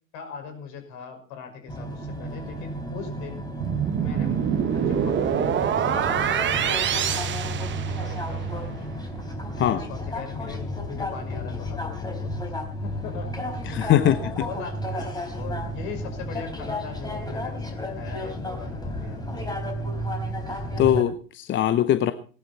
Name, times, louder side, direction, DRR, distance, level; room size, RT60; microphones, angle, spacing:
voice 1, 0.1-3.4 3.9-4.4 4.7-8.9 9.6-12.5 12.8-13.6 14.0-19.5, left 6 dB, 55° left, 6 dB, 5.6 m, -40 dB
sound 1, 1.7-21.0, equal, 10° left, 3.5 m, -32 dB
sound 2, 3.6-8.4, right 9 dB, 30° right, 1.3 m, -25 dB
voice 2, 13.7-14.2 20.8-22.1, left 11 dB, 30° left, 12 dB, 0.8 m, -21 dB
18.5 x 12.0 x 4.2 m, 0.40 s
hypercardioid pair, 100°, 41 cm